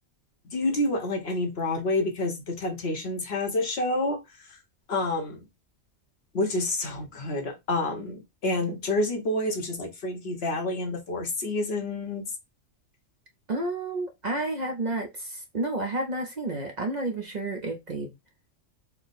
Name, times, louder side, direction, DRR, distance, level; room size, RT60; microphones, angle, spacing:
voice 1, 0.4-4.6 4.9-5.4 6.3-12.2, left 2 dB, 60° left, 1.2 m, -28 dB
voice 2, 13.5-18.1, right 2 dB, 45° right, 0.7 m, -31 dB
4.5 x 2.1 x 4.0 m
omnidirectional pair, 1.2 m